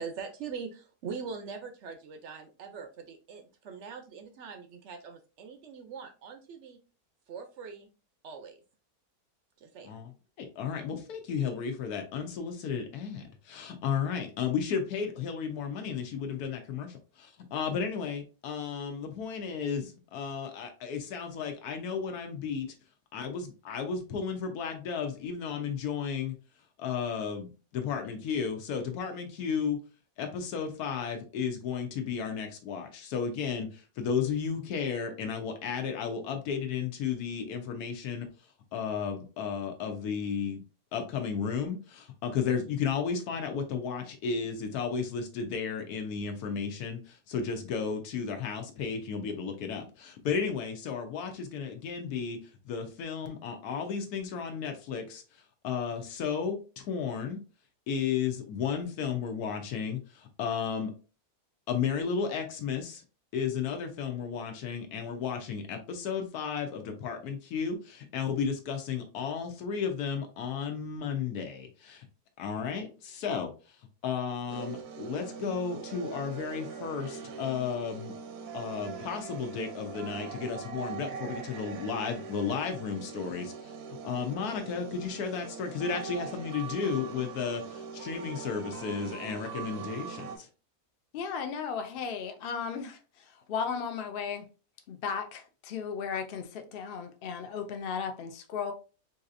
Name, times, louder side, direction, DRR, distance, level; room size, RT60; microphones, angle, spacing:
voice 1, 0.0-6.8 7.3-7.9 8.2-8.5 9.6-9.9, right 5 dB, 70° right, 0.7 m, -42 dB
voice 2, 10.4-22.7 23.1-26.4 26.8-29.8 30.2-38.3 38.7-40.6 40.9-52.4 52.6-55.2 55.6-57.4 57.9-60.9 61.7-63.0 63.3-72.0 72.4-73.5 74.0-78.1 78.5-83.7 84.0-90.5, left 6 dB, 85° left, 1.2 m, -33 dB
sound 1, 74.5-90.4, right 6 dB, 85° right, 1.2 m, -41 dB
voice 3, 91.1-94.5 94.9-98.7, left 6 dB, 60° left, 0.6 m, -35 dB
4.0 x 2.7 x 2.4 m
omnidirectional pair, 1.6 m